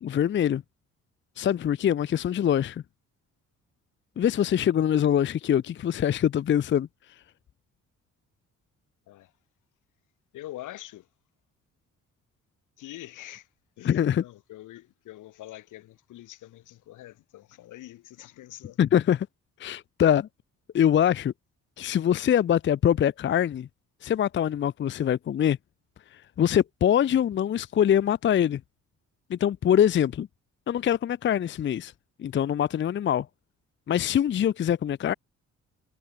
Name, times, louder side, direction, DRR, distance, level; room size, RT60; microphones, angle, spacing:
voice 1, 0.0-0.6 1.4-2.8 4.2-7.2 13.8-14.2 18.8-19.3 19.6-20.3 20.7-21.3 21.8-23.7 24.0-25.6 26.1-28.6 29.3-30.3 30.7-31.9 32.2-33.3 33.9-35.1, left 10 dB, 40° left, 0.5 m, -24 dB
voice 2, 10.3-11.1 12.8-13.5 13.8-18.8, left 15 dB, 85° left, 3.3 m, -44 dB
cardioid pair, 90°, 30 cm